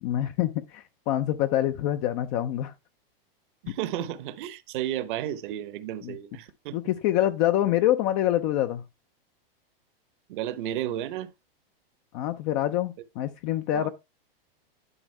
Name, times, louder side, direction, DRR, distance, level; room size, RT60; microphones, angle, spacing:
voice 1, 0.0-2.7 6.0-6.1 6.7-8.8 12.1-13.9, left 12 dB, 40° left, 0.6 m, -26 dB
voice 2, 3.6-6.8 10.3-11.3 13.7-13.9, right 12 dB, 60° right, 1.0 m, -33 dB
11.0 x 5.1 x 3.3 m
supercardioid pair, 140°, 29 cm